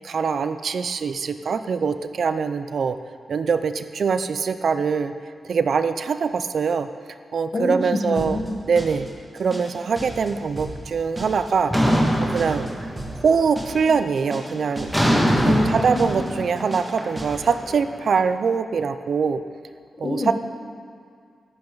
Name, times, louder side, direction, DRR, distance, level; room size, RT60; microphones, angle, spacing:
voice 1, 0.0-3.0 3.3-5.1 5.5-6.9 7.3-8.4 8.7-9.1 9.3-11.7 12.2-12.7 13.2-14.9 15.4-19.4 20.0-20.3, right 5 dB, 60° right, 10 dB, 0.5 m, -23 dB
voice 2, 7.5-8.6 15.4-16.3 20.0-20.3, left 2 dB, 40° left, 2 dB, 1.4 m, -26 dB
sound 1, 8.2-8.5 8.8-9.1 9.4-9.7 10.0-10.3 10.6-10.9 11.2-11.5 11.8-12.1 12.4-12.7 13.0-13.3 13.6-13.9 14.2-14.5 14.8-15.1 15.4-15.7 16.0-16.3 16.6-16.9 17.2-17.5, right 1 dB, 20° right, 1.9 m, -34 dB
sound 2, 11.7-13.3 13.6-14.0 14.9-18.0, equal, ahead, 1.8 m, -22 dB
14.0 x 11.5 x 3.9 m, 2.1 s
wide cardioid pair, 160°, 0 cm